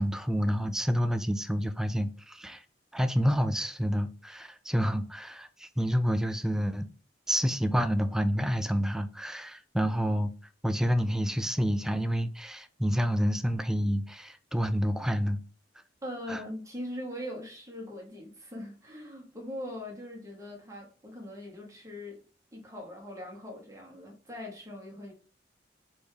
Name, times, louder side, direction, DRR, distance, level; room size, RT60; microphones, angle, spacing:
voice 1, 0.0-2.6 2.9-6.9 7.3-10.3 10.6-15.4 16.3-16.4, equal, 5° right, 0.4 m, -28 dB
voice 2, 16.0-22.2 22.5-25.1, left 1 dB, 20° right, 1.4 m, -41 dB
4.4 x 3.5 x 3.3 m
head